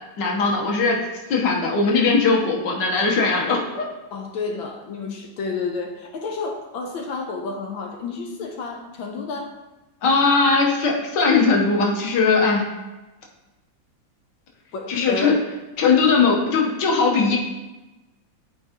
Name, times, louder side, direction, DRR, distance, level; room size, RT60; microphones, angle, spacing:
voice 1, 0.2-1.0 1.3-3.9 10.0-12.7 14.9-15.3 15.8-17.4, left 4 dB, 65° left, 0 dB, 1.8 m, -19 dB
voice 2, 4.1-9.5 14.7-15.4, left 4 dB, 90° left, 1 dB, 1.6 m, -30 dB
11.5 x 4.7 x 2.9 m, 1.1 s
omnidirectional pair, 2.1 m